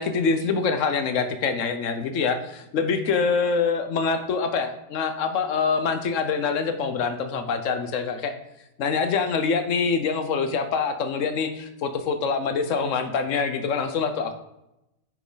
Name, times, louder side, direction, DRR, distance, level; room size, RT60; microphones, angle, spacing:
voice 1, 0.0-8.3 8.8-14.3, left 5 dB, 90° left, 9 dB, 1.2 m, -25 dB
9.0 x 6.2 x 3.9 m, 0.90 s
omnidirectional pair, 1.3 m